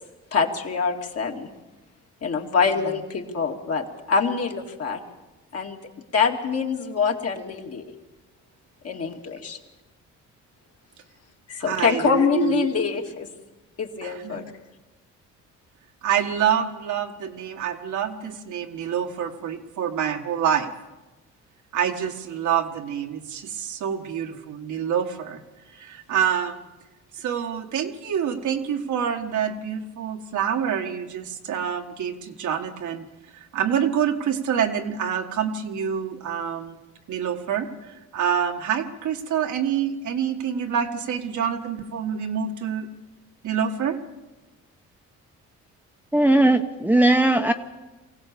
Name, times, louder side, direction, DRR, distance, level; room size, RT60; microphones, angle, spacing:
voice 1, 0.3-1.5 2.2-5.0 5.5-5.8 6.1-7.9 8.8-9.6 11.5-13.3 13.8-14.4, left 5 dB, 50° left, 1 dB, 2.4 m, -25 dB
voice 2, 11.6-12.7 14.0-14.5 16.0-20.7 21.7-25.4 25.7-26.7 27.2-33.0 33.5-36.8 37.1-42.9 43.4-44.0, right 8 dB, 75° right, 4 dB, 1.7 m, -27 dB
voice 3, 46.1-47.5, right 2 dB, 5° right, 5 dB, 0.9 m, -18 dB
23.5 x 16.0 x 6.9 m, 1.1 s
cardioid pair, 90°, 30 cm